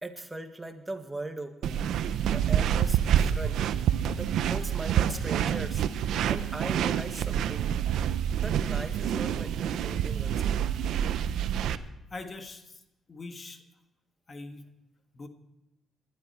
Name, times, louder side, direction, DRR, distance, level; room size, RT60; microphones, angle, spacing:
voice 1, 0.0-1.8 2.2-3.6 4.1-5.8 6.3-7.7 8.4-10.7, right 2 dB, 15° right, 6 dB, 1.7 m, -39 dB
sound 1, 1.6-11.8, right 9 dB, 80° right, 0.7 m, -27 dB
voice 2, 12.1-12.8 13.1-13.6 14.3-14.6 15.1-15.3, left 3 dB, 35° left, 6 dB, 1.5 m, -42 dB
19.5 x 12.5 x 4.5 m, 0.93 s
cardioid pair, 90°, 0 cm